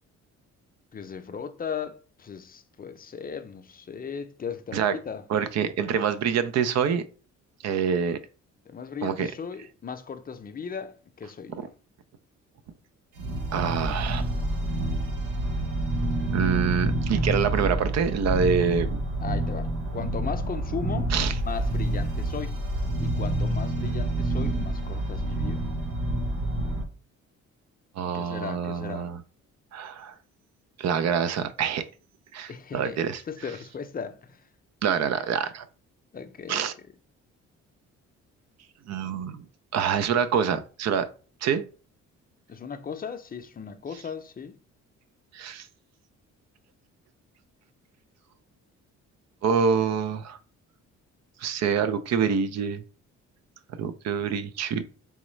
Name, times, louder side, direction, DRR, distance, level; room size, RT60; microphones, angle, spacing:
voice 1, 0.9-5.2 8.7-11.7 19.2-21.1 21.4-22.6 23.0-25.7 28.1-29.1 32.5-34.5 36.1-36.7 42.5-44.6, left 6 dB, 30° left, 0.5 m, -37 dB
voice 2, 5.3-7.0 7.6-8.2 9.0-9.3 11.6-11.7 13.5-14.3 16.3-19.0 21.1-21.3 28.0-29.2 29.7-30.2 30.8-31.9 32.3-33.2 34.8-35.7 36.5-36.7 38.9-39.5 39.7-41.1 41.4-41.7 45.3-45.7 49.4-50.4 51.4-52.8 53.8-54.8, right 7 dB, 60° right, 0.5 m, -26 dB
sound 1, 13.2-26.8, right 1 dB, 85° right, 0.9 m, -28 dB
3.5 x 3.1 x 3.1 m
cardioid pair, 90°, 30 cm